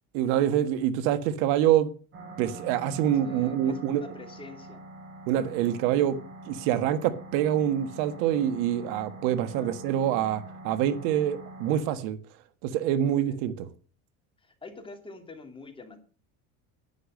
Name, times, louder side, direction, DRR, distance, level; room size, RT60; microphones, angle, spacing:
voice 1, 0.1-1.9 2.4-4.0 5.3-6.2 6.5-12.2 12.6-13.7, right 11 dB, 80° right, 12 dB, 1.6 m, -26 dB
sound 1, 2.1-11.8, right 1 dB, 35° right, 6.4 m, -44 dB
voice 2, 3.2-4.8 9.5-9.8 13.0-13.4 14.4-16.0, left 3 dB, 15° left, 4 dB, 2.8 m, -46 dB
11.5 x 10.0 x 6.5 m, 0.37 s
cardioid pair, 140°, 37 cm